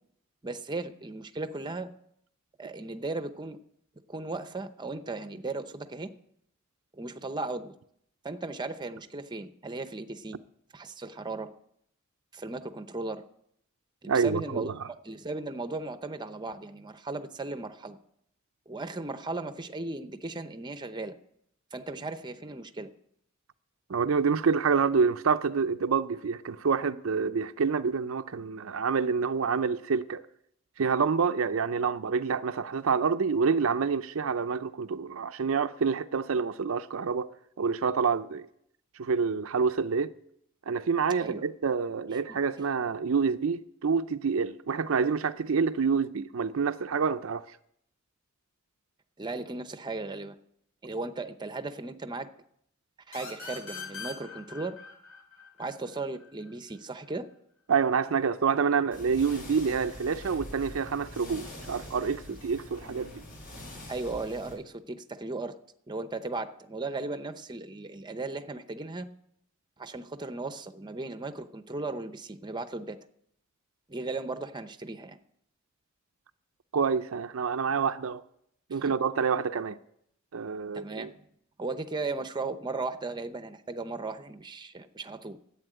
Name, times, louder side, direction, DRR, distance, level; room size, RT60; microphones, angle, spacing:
voice 1, 0.4-1.9 2.6-3.6 4.1-6.1 6.9-7.7 8.2-10.4 10.7-11.5 12.3-13.2 14.0-18.0 18.7-21.2 21.7-22.9 41.2-41.5 42.1-42.4 49.2-50.4 50.8-52.3 53.1-54.8 55.6-57.3 63.9-65.6 65.9-69.1 69.8-73.0 73.9-75.2 78.7-78.9 80.7-81.1 81.6-85.4, right 3 dB, 20° right, 0.7 m, -36 dB
voice 2, 14.1-14.7 23.9-30.2 30.8-37.3 37.6-38.5 39.0-40.1 40.7-47.5 57.7-63.2 76.7-78.2 78.7-79.8 80.3-81.1, right 5 dB, 70° right, 0.5 m, -27 dB
sound 1, 53.1-56.5, left 5 dB, 90° left, 4.5 m, -42 dB
sound 2, 58.9-64.5, left 1 dB, 45° left, 7.1 m, -44 dB
11.0 x 8.4 x 9.1 m
head